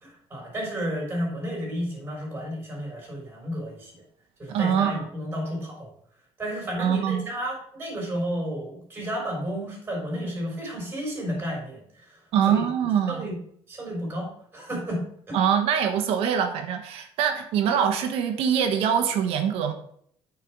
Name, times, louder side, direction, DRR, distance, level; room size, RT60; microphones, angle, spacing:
voice 1, 0.0-3.9 4.4-5.9 6.4-12.2 12.5-12.6 13.1-13.4 13.7-15.4, equal, 20° right, -2 dB, 3.7 m, -32 dB
voice 2, 4.5-5.0 6.8-7.2 12.3-13.3 15.3-19.7, right 8 dB, 75° right, 6 dB, 1.1 m, -24 dB
8.9 x 4.7 x 4.6 m, 0.65 s
cardioid pair, 150°, 10 cm